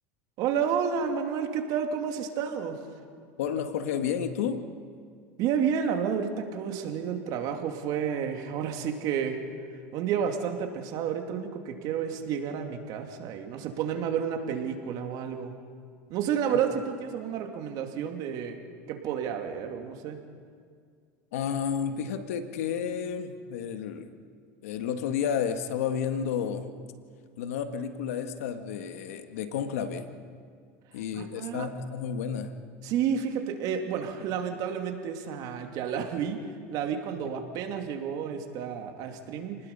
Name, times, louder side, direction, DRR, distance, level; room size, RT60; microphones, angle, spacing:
voice 1, 0.4-2.8 5.4-9.4 9.9-15.5 16.1-18.6 18.9-20.2 31.2-31.7 32.8-36.4 36.7-39.6, right 7 dB, 60° right, 4 dB, 2.7 m, -30 dB
voice 2, 3.4-4.6 21.3-24.1 24.6-26.7 27.4-30.1 30.9-32.5 37.2-37.4, left 7 dB, 85° left, 8 dB, 1.7 m, -31 dB
30.0 x 19.5 x 5.6 m, 2.1 s
supercardioid pair, 110°, 8 cm